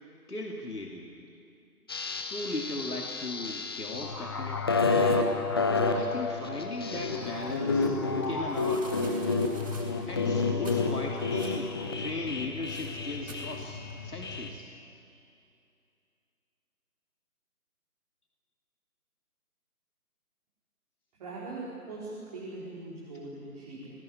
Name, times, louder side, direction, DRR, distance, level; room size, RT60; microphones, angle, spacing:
voice 1, 0.3-1.3 2.3-4.8 5.7-8.9 10.1-11.7 12.0-14.7, left 2 dB, 75° left, 0 dB, 2.9 m, -38 dB
sound 1, 1.9-14.5, left 3 dB, 15° left, 1.0 m, -30 dB
sound 2, 7.2-14.1, right 2 dB, 55° right, 7.6 m, -51 dB
voice 2, 21.1-23.9, right 2 dB, 25° right, -6 dB, 4.4 m, -41 dB
27.5 x 19.0 x 9.8 m, 2.6 s
figure-of-eight pair, 150°, 46 cm